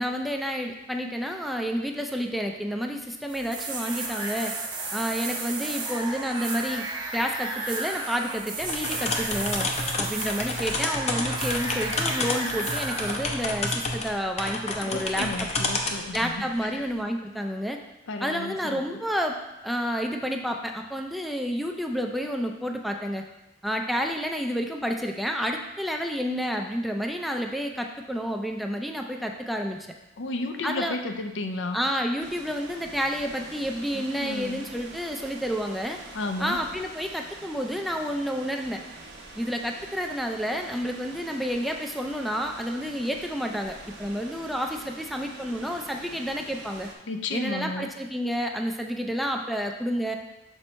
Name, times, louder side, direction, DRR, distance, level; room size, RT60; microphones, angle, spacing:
voice 1, 0.0-4.5 4.9-6.9 7.1-9.7 10.0-15.5 16.1-17.8 18.2-23.2 23.6-29.8 30.6-31.0 31.7-36.0 36.4-38.8 39.4-46.9 47.3-50.2, equal, ahead, 2 dB, 0.4 m, -30 dB
sound 1, 3.3-13.2, right 3 dB, 25° right, 0.9 m, -33 dB
sound 2, 8.6-16.3, left 2 dB, 35° left, 0.7 m, -30 dB
voice 2, 14.8-16.9 18.1-19.0 30.2-31.8 33.9-34.7 36.1-36.6 47.1-47.9, left 2 dB, 75° left, 6 dB, 0.6 m, -33 dB
sound 3, 32.2-47.0, right 2 dB, 60° right, 1.0 m, -45 dB
6.1 x 4.5 x 4.3 m, 0.95 s
head